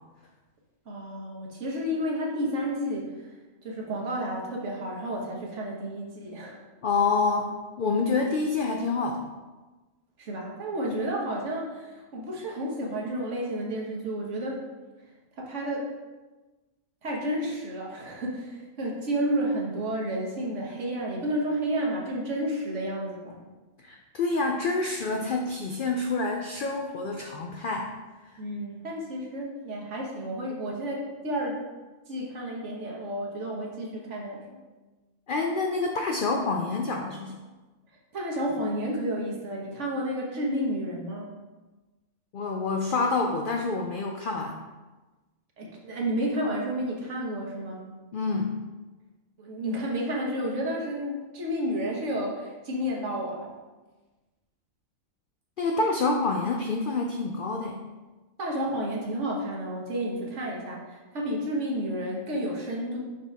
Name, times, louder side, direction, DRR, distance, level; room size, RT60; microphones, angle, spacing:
voice 1, 0.9-3.3 3.6-6.6 10.2-14.7 15.4-15.9 17.0-23.5 28.4-31.6 32.1-34.5 38.1-41.3 45.6-47.8 49.4-53.5 58.4-63.0, equal, 60° right, -2 dB, 1.4 m, -31 dB
voice 2, 6.8-9.2 23.8-27.9 35.3-37.4 42.3-44.6 48.1-48.6 55.6-57.8, left 3 dB, 65° left, 2 dB, 0.5 m, -27 dB
5.7 x 4.8 x 3.5 m, 1.2 s
omnidirectional pair, 1.4 m